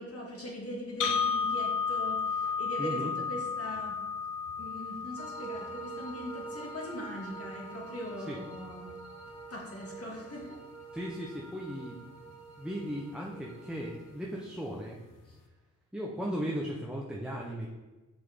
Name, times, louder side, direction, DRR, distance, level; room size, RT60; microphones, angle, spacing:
voice 1, 0.0-3.9 4.6-8.9 9.5-10.6 15.3-15.4, equal, 45° left, -3 dB, 2.3 m, -41 dB
sound 1, 1.0-9.0, left 6 dB, 85° left, 0.7 m, -34 dB
voice 2, 2.4-3.1 8.3-8.4 10.9-12.0 12.2-15.0 15.9-17.7, equal, 5° right, -3 dB, 0.8 m, -37 dB
sound 2, 5.2-14.1, right 5 dB, 60° right, 1.0 m, -47 dB
6.2 x 6.1 x 3.7 m, 1.2 s
cardioid pair, 90°, 31 cm